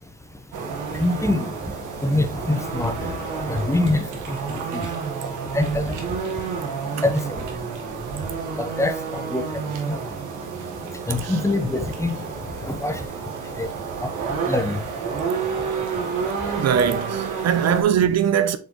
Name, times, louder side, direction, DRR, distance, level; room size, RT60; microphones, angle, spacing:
sound 1, 0.5-17.8, right 5 dB, 85° right, 1.6 m, -30 dB
voice 1, 0.9-1.5 2.0-4.9 5.5-6.0 7.0-7.4 8.6-9.4 9.9-10.0 11.1-12.2 12.6-13.0 13.6-13.7 14.0-14.1 14.5-14.8, left 2 dB, 10° left, 0.9 m, -24 dB
voice 2, 16.6-18.6, right 8 dB, 60° right, 0.7 m, -21 dB
8.1 x 4.0 x 3.1 m
cardioid pair, 90°, 30 cm